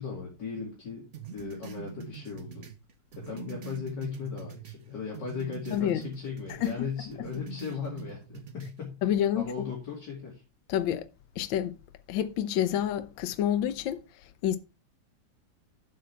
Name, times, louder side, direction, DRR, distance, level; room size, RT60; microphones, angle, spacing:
voice 1, 0.0-2.7 3.2-9.0 9.3-10.4, left 6 dB, 60° left, 3.0 m, -37 dB
sound 1, 1.1-4.8 5.1-6.8 7.1-8.8, right 7 dB, 45° right, 1.1 m, -44 dB
voice 2, 5.7-6.0 6.5-6.7 9.0-9.5 10.7-11.1 11.4-11.8 12.1-14.6, left 10 dB, 80° left, 1.4 m, -28 dB
8.8 x 7.7 x 3.4 m
omnidirectional pair, 2.1 m